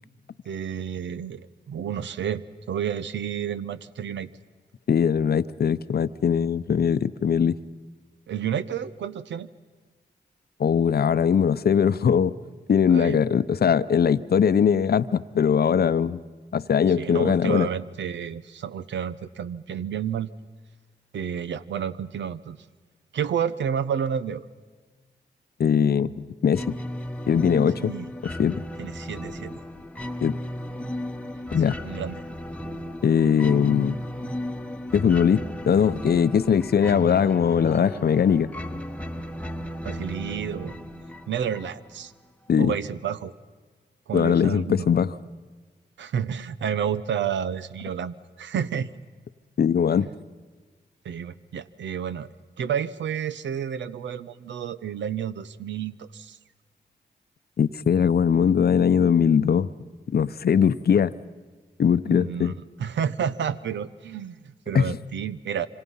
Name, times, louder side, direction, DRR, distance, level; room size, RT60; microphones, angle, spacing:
voice 1, 0.5-4.3 8.3-9.5 12.9-13.2 16.9-20.3 21.1-22.6 23.1-24.4 27.8-28.1 28.8-29.6 31.8-32.2 39.8-40.8 41.3-42.1 42.6-43.3 44.1-44.9 46.0-48.9 50.0-50.1 51.0-52.3 52.6-56.4 62.1-62.5 62.8-65.7, right 8 dB, 90° right, 14 dB, 0.7 m, -30 dB
voice 2, 4.9-7.6 10.6-12.4 12.7-16.2 16.5-17.7 25.6-26.8 27.3-27.9 28.2-28.6 30.2-30.4 31.5-31.8 33.0-34.0 34.9-38.5 42.5-42.7 44.1-45.2 49.6-50.1 57.6-59.7 60.1-61.1 61.8-62.5 64.7-65.0, left 7 dB, 60° left, 14 dB, 0.7 m, -21 dB
sound 1, 26.5-42.0, left 1 dB, 5° left, 1.2 m, -35 dB
26.0 x 25.5 x 5.5 m, 1.4 s
cardioid pair, 55°, 18 cm